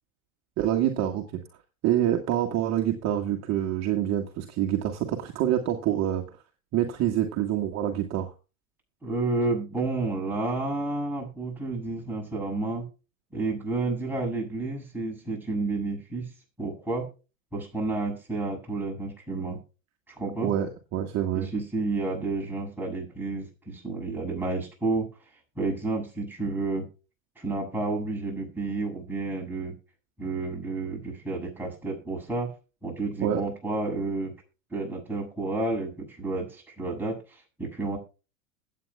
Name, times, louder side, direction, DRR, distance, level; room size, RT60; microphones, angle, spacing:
voice 1, 0.6-1.2 1.8-6.2 6.7-8.3 20.4-21.5 33.2-33.4, right 11 dB, 40° right, 3 dB, 1.7 m, -26 dB
voice 2, 9.0-12.9 13.3-16.3 16.6-17.1 17.5-19.6 20.1-20.5 21.3-25.1 25.6-26.9 27.4-29.7 30.2-32.5 32.8-34.3 34.7-38.0, right 3 dB, 5° right, -2 dB, 7.3 m, -30 dB
21.0 x 8.9 x 2.3 m, 0.32 s
hypercardioid pair, 95°, 40 cm